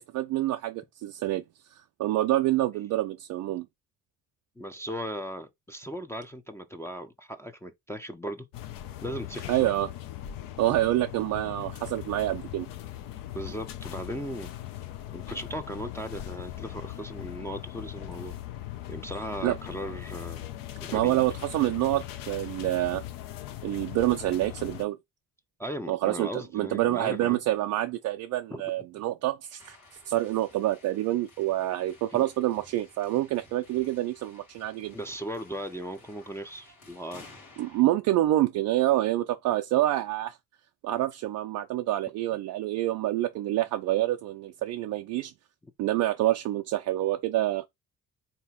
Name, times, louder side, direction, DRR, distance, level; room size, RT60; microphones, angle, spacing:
voice 1, 0.0-1.4 2.0-3.7 9.5-9.9 10.6-12.7 19.4-19.6 20.9-23.0 23.6-25.0 25.9-29.8 30.1-34.9 37.6-40.4 40.8-45.3 45.8-47.7, right 15 dB, 45° right, 0.5 m, -27 dB
voice 2, 4.6-8.5 9.0-9.7 13.3-14.5 15.1-18.4 18.9-20.5 20.8-21.2 25.6-27.4 28.5-28.6 34.9-37.3 45.6-45.7, equal, 5° left, 0.6 m, -37 dB
sound 1, 8.5-24.8, left 13 dB, 55° left, 0.7 m, -40 dB
sound 2, 29.6-37.8, left 3 dB, 80° left, 1.4 m, -55 dB
3.9 x 2.8 x 3.7 m
figure-of-eight pair, 45°, 42 cm